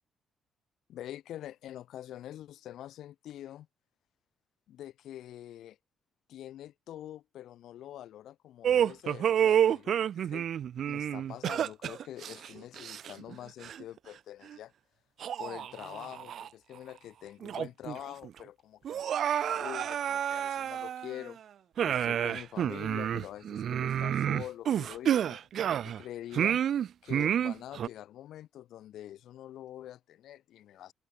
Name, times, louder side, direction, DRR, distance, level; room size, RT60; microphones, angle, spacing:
voice 1, 0.9-3.7 4.7-5.8 6.3-10.5 10.8-14.7 15.4-19.0 19.4-21.4 21.8-25.5 25.8-26.6 27.0-30.9, left 12 dB, 80° left, 0.6 m, -45 dB
sound 1, 8.6-13.3 13.6-13.8 14.5-14.6 15.2-16.5 16.9-17.0 17.4-18.0 18.2-18.3 18.8-21.3 21.8-26.0 26.3-27.9, right 9 dB, 65° right, 0.3 m, -29 dB
cardioid pair, 90°, 0 cm